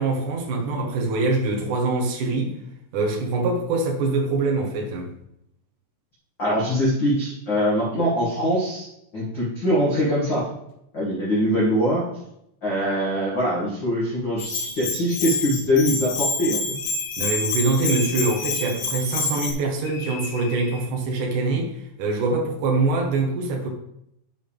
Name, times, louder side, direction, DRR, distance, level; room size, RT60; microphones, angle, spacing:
voice 1, 0.0-2.6 2.9-5.1 17.2-23.7, right 3 dB, 70° right, -1 dB, 1.9 m, -24 dB
voice 2, 6.4-10.5 10.9-12.1 12.6-16.7, equal, 50° left, -7 dB, 1.4 m, -23 dB
Bell, 14.4-19.5, left 4 dB, 65° left, 3.8 m, -27 dB
sound 1, 16.8-17.6 17.9-18.8 19.8-20.9, left 7 dB, 85° left, 3.5 m, -39 dB
8.1 x 7.5 x 3.5 m, 0.77 s
omnidirectional pair, 5.8 m